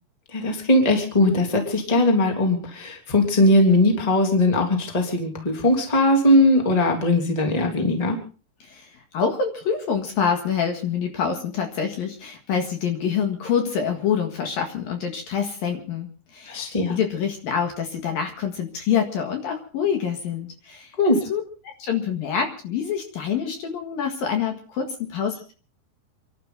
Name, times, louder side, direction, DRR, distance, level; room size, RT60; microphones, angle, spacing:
voice 1, 0.3-8.2 16.5-16.9 21.0-21.2, left 1 dB, 10° left, 2 dB, 2.4 m, -19 dB
voice 2, 8.6-16.6 16.9-20.9 21.3-21.4 21.8-25.5, left 7 dB, 60° left, 4 dB, 3.2 m, -26 dB
29.0 x 12.0 x 3.9 m, 0.38 s
omnidirectional pair, 5.3 m